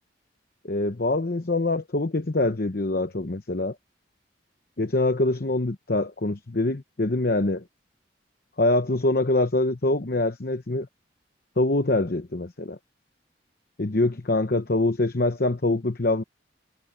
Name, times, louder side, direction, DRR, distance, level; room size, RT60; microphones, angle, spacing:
voice 1, 0.6-3.7 4.8-7.6 8.6-10.9 11.6-12.8 13.8-16.2, left 2 dB, 50° left, 0.9 m, -24 dB
head